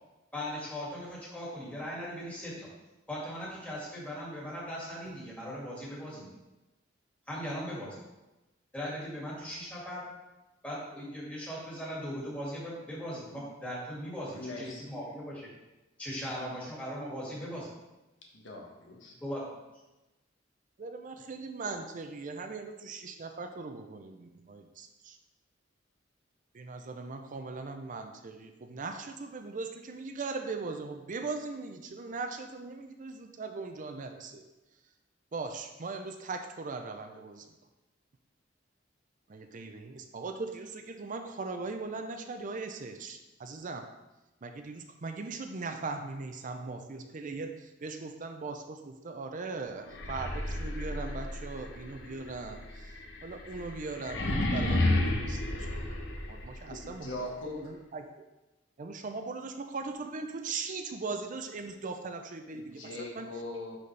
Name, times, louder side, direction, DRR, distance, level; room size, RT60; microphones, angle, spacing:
voice 1, 0.3-2.7 3.1-6.3 7.3-8.0 8.7-10.1 10.6-15.5 16.0-17.7 19.2-19.4, equal, 10° left, -6 dB, 2.2 m, -39 dB
voice 2, 14.3-14.9 18.3-19.2 56.7-57.7 62.5-63.8, left 2 dB, 85° left, -1 dB, 1.4 m, -41 dB
voice 3, 20.8-25.2 26.5-34.5 35.3-37.6 39.3-43.9 44.4-55.7 56.3-57.3 57.6-58.2 58.8-63.3, right 3 dB, 45° right, 6 dB, 0.5 m, -39 dB
sound 1, 49.9-56.8, left 1 dB, 70° left, 1.0 m, -32 dB
10.5 x 4.2 x 3.3 m, 1.0 s
head